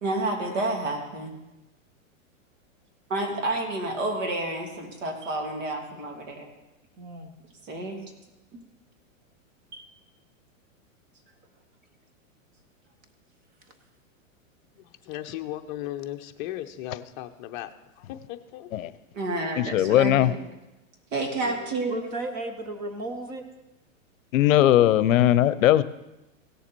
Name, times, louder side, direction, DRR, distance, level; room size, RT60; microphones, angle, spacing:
voice 1, 0.0-1.3 3.1-6.5 7.6-8.0 19.1-20.3 21.1-22.0, right 2 dB, 65° right, 2 dB, 2.9 m, -29 dB
voice 2, 7.0-7.3 9.7-9.9 21.4-21.6 21.9-23.4, right 1 dB, 20° right, 6 dB, 1.0 m, -35 dB
voice 3, 14.7-17.7 18.0-18.9, left 13 dB, 35° left, 6 dB, 0.7 m, -37 dB
voice 4, 19.6-20.3 24.3-25.8, left 12 dB, 75° left, 16 dB, 0.7 m, -19 dB
17.0 x 7.1 x 4.5 m, 0.96 s
supercardioid pair, 150°, 40 cm